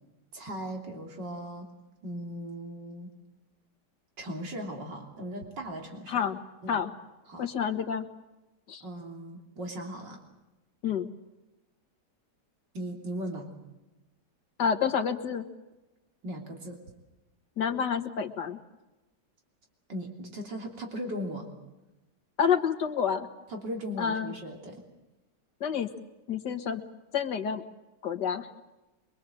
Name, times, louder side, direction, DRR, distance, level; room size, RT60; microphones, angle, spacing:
voice 1, 0.3-1.7 2.0-3.1 4.2-6.2 6.6-6.8 7.3-7.5 8.8-10.2 12.7-13.5 16.2-16.8 19.9-21.5 23.5-24.8, equal, 90° right, 1 dB, 3.9 m, -38 dB
voice 2, 6.1-6.4 6.7-6.9 7.4-8.1 8.7-8.8 10.8-11.1 14.6-15.4 17.6-18.6 22.4-23.3 24.0-24.3 25.6-25.9 26.3-26.8 27.1-27.6 28.0-28.5, left 7 dB, 75° left, 6 dB, 2.2 m, -28 dB
24.0 x 24.0 x 7.7 m, 1.0 s
omnidirectional pair, 1.9 m